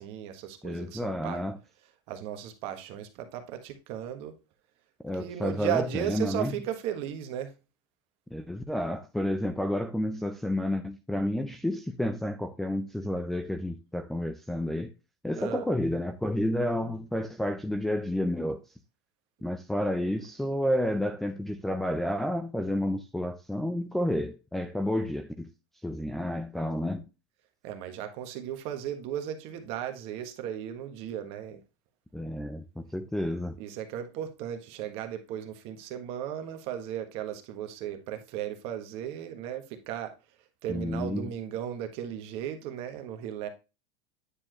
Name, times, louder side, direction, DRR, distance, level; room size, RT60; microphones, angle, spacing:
voice 1, 0.0-1.4 2.1-4.4 5.2-7.5 15.4-15.7 27.6-31.6 33.6-40.1 40.6-43.5, right 10 dB, 45° right, 1.4 m, -36 dB
voice 2, 0.6-1.6 5.0-6.5 8.3-14.9 15.2-18.6 19.4-25.5 25.8-27.1 32.1-33.6 40.7-41.3, left 1 dB, ahead, 0.4 m, -30 dB
9.7 x 4.4 x 2.9 m
supercardioid pair, 165°, 13 cm